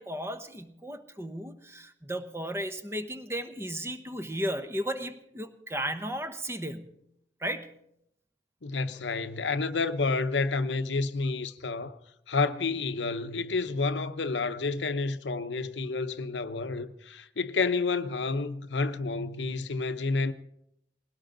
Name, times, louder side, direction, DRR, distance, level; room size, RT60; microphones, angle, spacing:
voice 1, 0.0-7.0 7.4-7.8, equal, 15° right, 1.0 m, -35 dB
voice 2, 8.6-12.0 12.3-20.3, left 3 dB, 85° left, 0.8 m, -30 dB
20.5 x 17.5 x 3.9 m
head